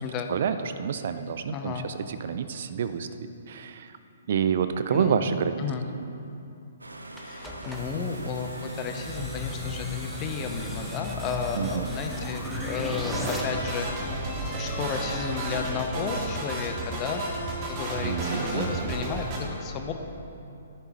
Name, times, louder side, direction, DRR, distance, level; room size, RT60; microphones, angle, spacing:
voice 1, 0.3-3.1 3.5-4.0 4.3-5.6 11.6-11.9 18.0-18.9, right 7 dB, 50° right, 11 dB, 0.5 m, -28 dB
voice 2, 1.5-1.9 4.9-5.2 5.6-5.9 7.2-14.1 14.5-17.2 17.7-19.9, left 6 dB, 25° left, 5 dB, 0.8 m, -33 dB
sound 1, 6.8-13.7, right 2 dB, 80° right, 0.8 m, -42 dB
sound 2, 7.2-13.4, left 2 dB, ahead, 0.9 m, -35 dB
sound 3, 12.8-19.4, right 1 dB, 30° right, 1.9 m, -32 dB
14.5 x 10.5 x 3.1 m, 2.7 s
figure-of-eight pair, 125°, 0 cm